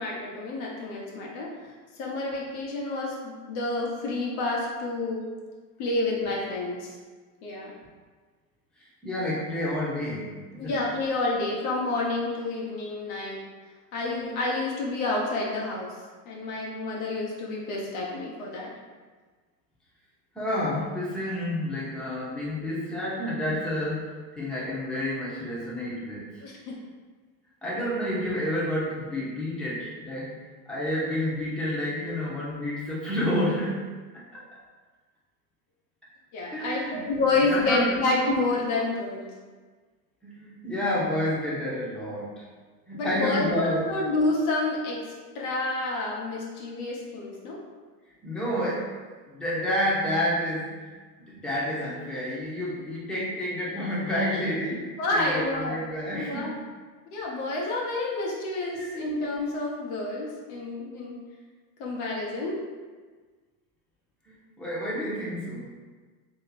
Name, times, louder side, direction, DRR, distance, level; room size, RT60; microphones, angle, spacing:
voice 1, 0.0-1.5 2.0-5.2 5.8-6.9 7.4-7.7 10.6-13.4 13.9-15.9 16.2-18.7 26.4-26.8 27.8-27.9 36.3-39.3 43.0-45.0 45.3-47.6 55.0-55.8 56.1-56.6 57.1-61.2 61.8-62.6, left 2 dB, 60° left, -3 dB, 1.1 m, -29 dB
voice 2, 8.8-10.8 20.3-26.5 27.6-30.3 30.7-33.8 34.1-34.6 36.5-38.0 40.2-42.5 42.9-43.9 48.2-48.9 49.3-56.6 58.7-59.2 64.2-65.7, left 1 dB, ahead, -8 dB, 1.1 m, -30 dB
3.1 x 3.0 x 4.1 m, 1.4 s
hypercardioid pair, 100°, 46 cm